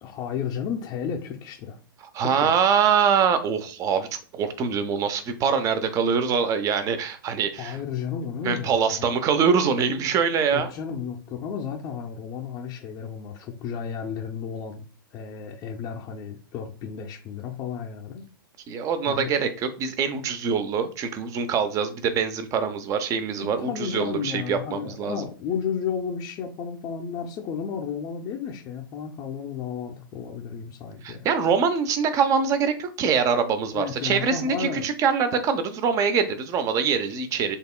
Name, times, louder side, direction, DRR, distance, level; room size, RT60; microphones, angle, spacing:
voice 1, 0.0-1.8 2.2-2.5 7.6-9.1 10.5-14.8 15.1-18.2 19.1-19.3 23.4-31.3 33.7-34.9, left 7 dB, 30° left, 0.6 m, -33 dB
voice 2, 2.0-7.8 8.4-10.7 18.7-25.2 31.0-37.6, right 6 dB, 30° right, 0.6 m, -24 dB
5.5 x 3.6 x 2.2 m
figure-of-eight pair, 105°, 12 cm